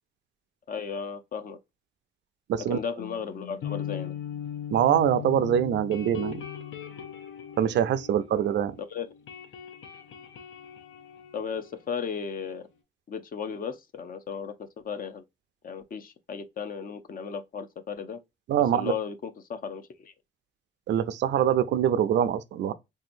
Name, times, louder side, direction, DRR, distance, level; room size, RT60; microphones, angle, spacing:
voice 1, 0.7-1.6 2.7-4.1 8.9-9.1 11.3-12.7 13.1-14.5 14.8-15.2 15.6-18.2 18.7-20.1, left 6 dB, 45° left, 0.6 m, -35 dB
sound 1, 3.0-8.8 9.0-12.5, left 9 dB, 75° left, 0.7 m, -39 dB
voice 2, 4.7-6.4 7.6-8.7 18.5-18.9 20.9-22.7, right 9 dB, 65° right, 0.4 m, -24 dB
3.5 x 2.7 x 2.5 m
cardioid pair, 90°, 20 cm